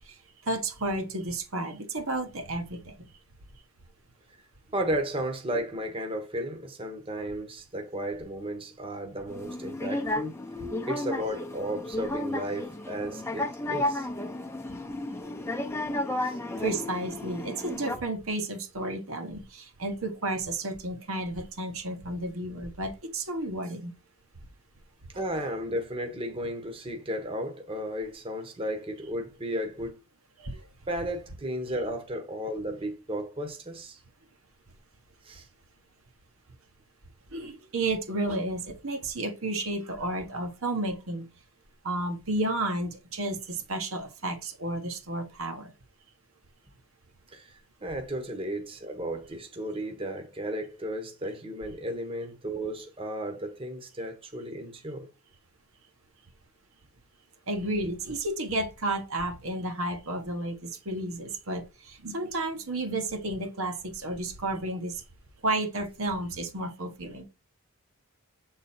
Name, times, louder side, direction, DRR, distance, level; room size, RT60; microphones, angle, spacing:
voice 1, 0.4-3.1 16.6-23.9 30.4-30.6 37.3-41.3 41.8-45.7 57.5-65.0 65.4-67.2, right 2 dB, 70° right, 1.2 m, -32 dB
voice 2, 4.7-10.4 10.8-14.1 16.2-16.4 25.2-30.0 30.9-34.0 35.2-35.5 47.3-47.5 47.8-55.1, right 1 dB, 25° right, 1.0 m, -34 dB
sound 1, 9.3-18.0, left 1 dB, 10° left, 0.6 m, -33 dB
7.5 x 3.9 x 4.3 m
head